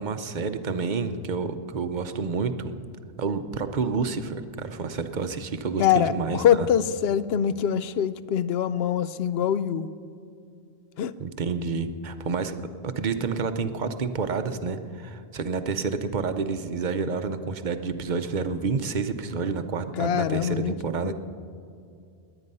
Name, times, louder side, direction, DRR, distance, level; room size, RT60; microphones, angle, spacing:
voice 1, 0.0-2.7 3.2-6.7 11.2-12.6 12.8-21.1, right 5 dB, 50° right, 9 dB, 0.7 m, -29 dB
voice 2, 5.8-9.9 11.0-11.1 20.0-20.7 21.0-21.1, left 9 dB, 70° left, 15 dB, 0.8 m, -24 dB
20.5 x 9.0 x 5.4 m, 2.4 s
omnidirectional pair, 1.1 m